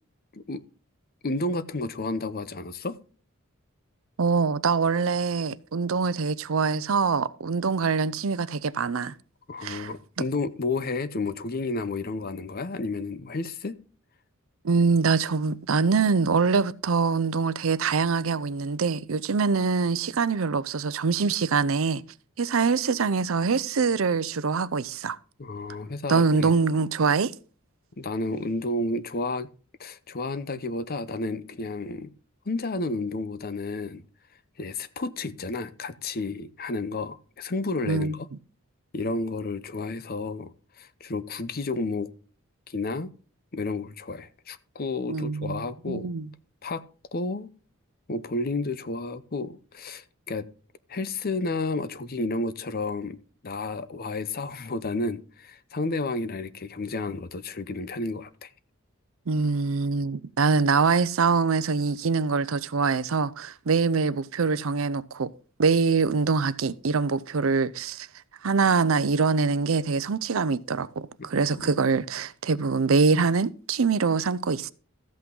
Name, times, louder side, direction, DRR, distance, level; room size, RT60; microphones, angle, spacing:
voice 1, 1.2-3.0 9.5-13.8 25.4-26.5 28.0-29.5 29.8-32.1 32.5-34.0 34.6-38.3 38.9-42.1 42.7-43.1 43.5-46.1 46.6-46.8 47.1-47.5 48.1-50.5 50.9-53.2 53.4-58.5 71.2-71.3 71.6-71.7, left 2 dB, 45° left, 0.7 m, -31 dB
voice 2, 4.2-9.1 9.6-9.9 14.6-22.0 22.4-25.2 26.1-27.3 37.9-38.2 45.1-46.3 59.3-65.3 65.6-68.1 68.4-74.7, right 4 dB, 65° right, 0.6 m, -24 dB
14.0 x 8.4 x 3.8 m
head